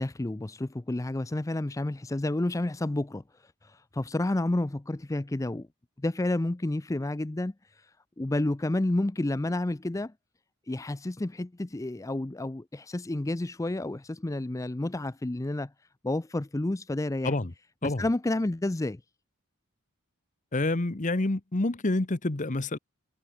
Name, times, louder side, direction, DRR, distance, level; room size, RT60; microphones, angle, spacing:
voice 1, 0.0-5.7 6.0-10.1 10.7-15.7 16.0-17.3 17.8-19.0, left 1 dB, 15° left, 0.4 m, -30 dB
voice 2, 20.5-22.8, left 2 dB, 35° left, 1.0 m, -28 dB
head